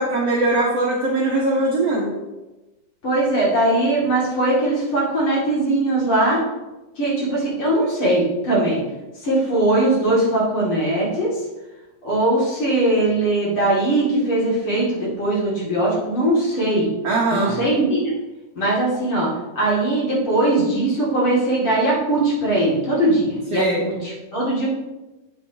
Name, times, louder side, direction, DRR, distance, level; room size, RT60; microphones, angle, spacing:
voice 1, 0.0-2.1 17.0-17.6 23.5-23.9, right 2 dB, 65° right, -4 dB, 1.7 m, -21 dB
voice 2, 3.0-6.4 7.0-8.8 9.2-11.3 12.0-16.9 17.3-18.1 18.6-19.3 19.6-24.7, right 1 dB, 40° left, -6 dB, 2.8 m, -20 dB
9.1 x 8.9 x 2.8 m, 1.1 s
omnidirectional pair, 4.1 m